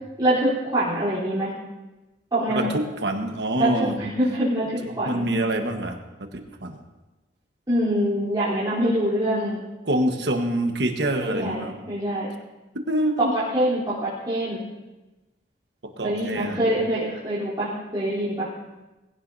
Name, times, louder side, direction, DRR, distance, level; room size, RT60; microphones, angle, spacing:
voice 1, 0.2-1.5 2.3-2.7 3.6-4.7 5.0-5.3 7.7-9.6 11.2-12.3 13.2-14.6 16.0-18.5, right 1 dB, 25° right, -12 dB, 3.7 m, -24 dB
voice 2, 2.5-4.0 4.8-6.8 9.8-11.7 12.9-13.3 16.0-16.7, right 1 dB, 70° right, 4 dB, 1.4 m, -26 dB
20.0 x 16.5 x 2.8 m, 1.1 s
head